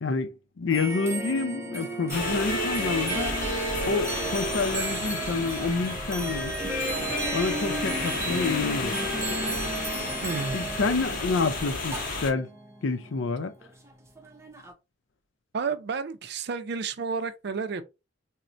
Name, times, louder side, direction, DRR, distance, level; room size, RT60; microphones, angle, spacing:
voice 1, 0.0-3.4 3.8-6.5 7.3-9.0 10.5-12.5 12.8-13.5, left 4 dB, 80° left, 0.5 m, -28 dB
sound 1, 0.7-14.7, right 3 dB, 15° right, 0.6 m, -36 dB
sound 2, 2.1-12.3, left 3 dB, 45° left, 0.8 m, -32 dB
sound 3, 2.1-10.6, equal, 15° left, 0.8 m, -35 dB
voice 2, 10.2-10.6 15.5-17.8, right 5 dB, 60° right, 0.4 m, -31 dB
4.2 x 2.1 x 2.5 m
head